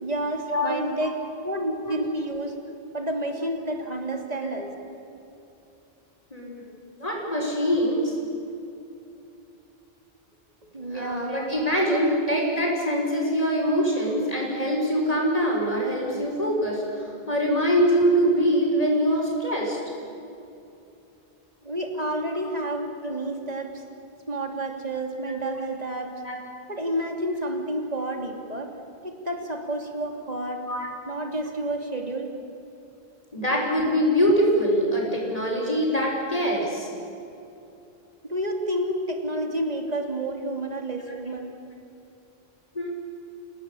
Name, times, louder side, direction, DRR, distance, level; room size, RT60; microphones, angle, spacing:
voice 1, 0.0-1.2 1.4-2.6 2.9-4.7 5.1-5.3 10.7-11.3 21.6-23.8 24.3-26.1 26.7-28.7 29.0-30.6 31.1-32.3 38.3-41.5, right 1 dB, 40° right, 3 dB, 3.0 m, -30 dB
voice 2, 7.0-8.2 10.9-19.8 23.0-23.1 25.2-25.4 26.2-26.4 30.7-30.9 33.3-36.9 41.0-41.3 42.7-42.9, equal, 35° left, -2 dB, 6.6 m, -24 dB
29.5 x 18.5 x 8.6 m, 2.8 s
omnidirectional pair, 1.0 m